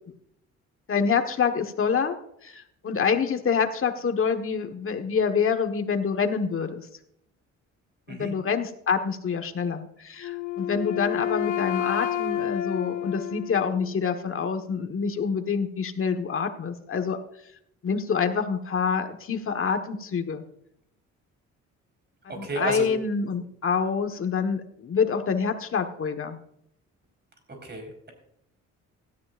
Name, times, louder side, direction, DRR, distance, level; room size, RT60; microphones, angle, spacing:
voice 1, 0.9-2.2 2.4-6.9 8.1-17.2 17.8-20.4 22.4-26.4, left 6 dB, 45° left, 6 dB, 1.5 m, -26 dB
Wind instrument woodwind instrument, 10.2-14.1, left 10 dB, 75° left, 1.1 m, -30 dB
voice 2, 22.3-22.9 27.5-28.1, right 2 dB, 35° right, 3 dB, 4.6 m, -32 dB
16.5 x 13.0 x 2.6 m, 0.74 s
cardioid pair, 90°, 30 cm